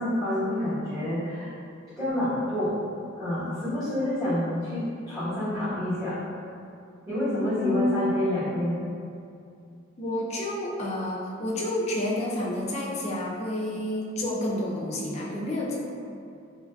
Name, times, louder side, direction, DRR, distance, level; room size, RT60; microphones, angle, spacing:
voice 1, 0.0-1.5 2.0-2.7 3.2-6.2 7.1-8.8, left 1 dB, 15° right, -17 dB, 1.0 m, -28 dB
voice 2, 7.6-8.1 10.0-15.8, left 1 dB, 30° left, -3 dB, 0.4 m, -29 dB
3.1 x 2.4 x 2.2 m, 2.5 s
head